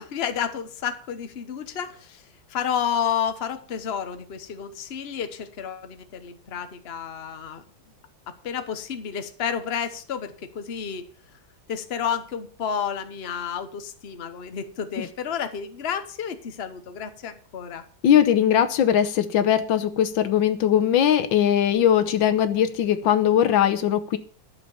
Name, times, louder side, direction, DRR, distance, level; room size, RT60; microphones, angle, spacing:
voice 1, 0.0-2.2 2.5-7.6 8.4-11.0 11.7-17.8, left 8 dB, 40° left, 9 dB, 1.2 m, -30 dB
voice 2, 18.0-24.2, left 9 dB, 85° left, 11 dB, 1.7 m, -20 dB
11.5 x 6.9 x 7.2 m, 0.43 s
omnidirectional pair, 2.1 m